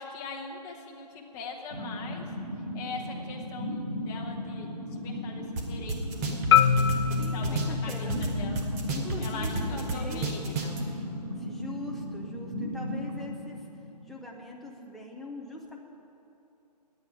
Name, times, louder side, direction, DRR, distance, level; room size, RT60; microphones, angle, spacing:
voice 1, 0.0-2.2 2.7-6.4 6.7-6.8 7.1-8.7 9.2-11.0, left 4 dB, 15° left, 0 dB, 1.2 m, -42 dB
sound 1, 1.7-14.4, equal, 60° right, 2.6 m, -37 dB
sound 2, 5.6-5.7 5.9-8.3 8.6-10.8, right 3 dB, 25° right, 1.2 m, -30 dB
Marimba xylophone, 6.5-10.7, left 8 dB, 40° left, 0.6 m, -27 dB
voice 2, 7.2-8.1 8.9-10.2 11.4-13.6 14.1-15.8, left 2 dB, ahead, -2 dB, 0.6 m, -42 dB
9.7 x 9.2 x 9.8 m, 2.8 s
hypercardioid pair, 155°, 21 cm